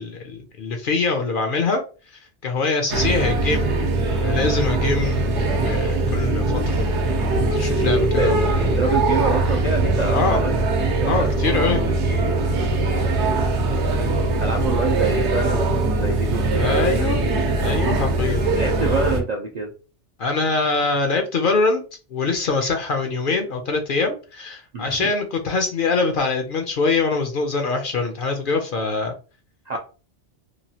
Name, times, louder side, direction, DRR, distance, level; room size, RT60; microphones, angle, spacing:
voice 1, 0.0-1.8 2.4-3.7 4.1-6.8 7.5-8.5 10.1-10.4 11.0-11.8 14.5-14.6 16.5-17.2 17.6-18.4 20.2-21.8 22.1-29.1, left 4 dB, 60° left, 5 dB, 0.6 m, -23 dB
sound 1, 2.9-19.2, right 2 dB, 70° right, 0.9 m, -21 dB
voice 2, 8.6-11.4 14.4-17.1 18.6-19.7 24.7-25.1 29.7-29.8, right 3 dB, 55° right, 1 dB, 0.4 m, -26 dB
3.0 x 2.3 x 2.7 m, 0.35 s
omnidirectional pair, 1.2 m